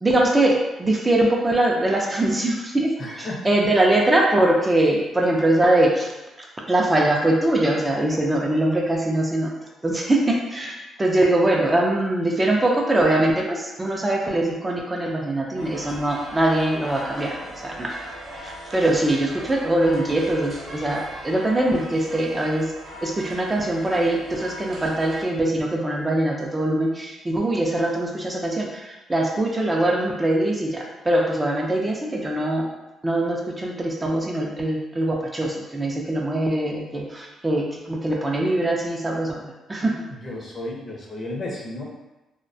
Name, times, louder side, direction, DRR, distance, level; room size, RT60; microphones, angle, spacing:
voice 1, 0.0-6.1 6.4-9.5 9.8-17.4 17.6-18.0 18.4-22.7 23.0-32.7 33.0-40.0, right 1 dB, 20° right, -1 dB, 0.3 m, -22 dB
voice 2, 3.0-3.5 3.7-3.8 40.2-41.8, left 1 dB, 40° left, -2 dB, 0.6 m, -33 dB
sound 1, 15.6-25.2, right 1 dB, 40° right, 0.8 m, -39 dB
2.3 x 2.1 x 2.6 m, 1.0 s
cardioid pair, 90°, 0 cm